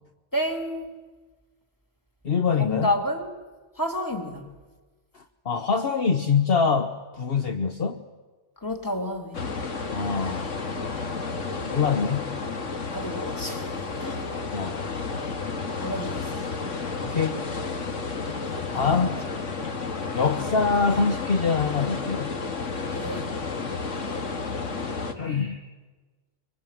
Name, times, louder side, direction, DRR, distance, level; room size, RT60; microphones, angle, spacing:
voice 1, 0.3-0.9 2.6-3.3 3.8-4.5 8.6-9.5 12.9-14.2 15.8-16.3 18.5-19.1 22.9-23.3, left 1 dB, 15° left, 5 dB, 2.7 m, -30 dB
voice 2, 2.2-2.9 5.1-8.0 9.9-11.2 11.6-12.4 14.5-15.0 17.0-17.4 18.7-19.2 20.1-22.4 25.0-25.7, left 5 dB, 55° left, 7 dB, 1.2 m, -25 dB
sound 1, 9.3-25.1, left 4 dB, 90° left, 2.2 m, -31 dB
24.5 x 24.0 x 9.1 m, 1.3 s
omnidirectional pair, 1.3 m